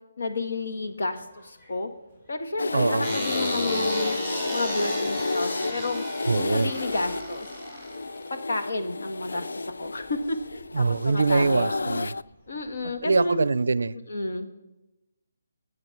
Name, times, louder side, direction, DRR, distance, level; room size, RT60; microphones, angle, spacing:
voice 1, 0.2-1.9 2.3-4.2 4.5-6.0 6.3-7.5 8.3-9.5 9.8-11.7 12.5-13.5 14.1-14.5, left 2 dB, 60° left, 5 dB, 1.4 m, -31 dB
sound 1, 0.7-13.3, left 1 dB, 30° left, 3.6 m, -55 dB
sound 2, 2.6-12.2, left 3 dB, 90° left, 0.3 m, -31 dB
voice 2, 2.7-3.1 6.3-6.7 10.7-12.1 13.0-14.0, right 4 dB, 70° right, 19 dB, 0.4 m, -23 dB
sound 3, 3.0-8.3, right 1 dB, 10° left, 1.5 m, -34 dB
11.0 x 7.7 x 5.9 m, 1.0 s
hypercardioid pair, 175°, 0 cm